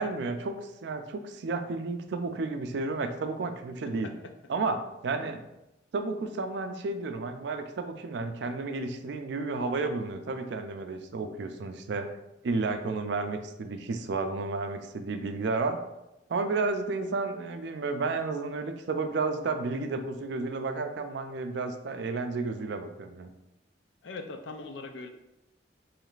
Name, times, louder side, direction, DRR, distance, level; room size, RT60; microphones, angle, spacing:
voice 1, 0.0-4.1 4.5-5.4 5.9-12.1 12.4-15.8 16.3-23.3, right 3 dB, 60° right, 7 dB, 0.4 m, -32 dB
voice 2, 24.0-25.1, left 3 dB, 70° left, 5 dB, 0.5 m, -40 dB
4.8 x 3.1 x 2.4 m, 0.92 s
head